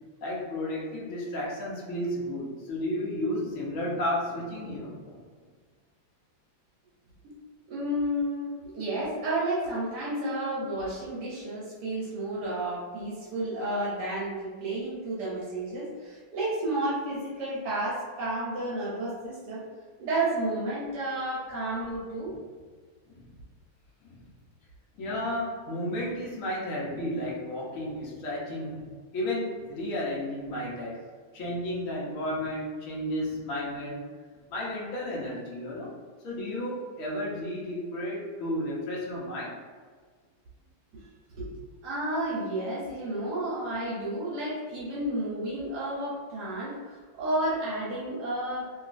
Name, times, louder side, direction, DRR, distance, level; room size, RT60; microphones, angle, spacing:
voice 1, 0.2-5.2 13.3-13.4 22.2-22.3 23.1-23.3 24.0-24.2 24.9-31.0 31.3-34.0 34.5-35.9 36.2-39.6, left 1 dB, 65° left, -5 dB, 0.8 m, -33 dB
voice 2, 7.7-19.6 20.0-22.3 41.4-41.5 41.8-48.7, right 1 dB, 70° right, -7 dB, 1.1 m, -31 dB
3.0 x 2.6 x 2.4 m, 1.5 s
omnidirectional pair, 2.3 m